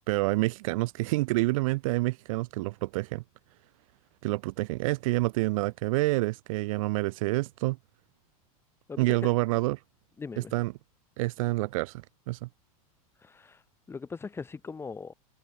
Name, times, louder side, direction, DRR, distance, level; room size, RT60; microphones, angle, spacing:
voice 1, 0.1-3.2 4.2-7.8 9.0-9.8 10.5-10.7 11.2-12.5, right 21 dB, 60° right, 0.8 m, -28 dB
voice 2, 8.9-9.3 10.2-10.5 13.2-13.6 13.9-15.1, left 4 dB, 15° left, 1.9 m, -39 dB
supercardioid pair, 145°, 19 cm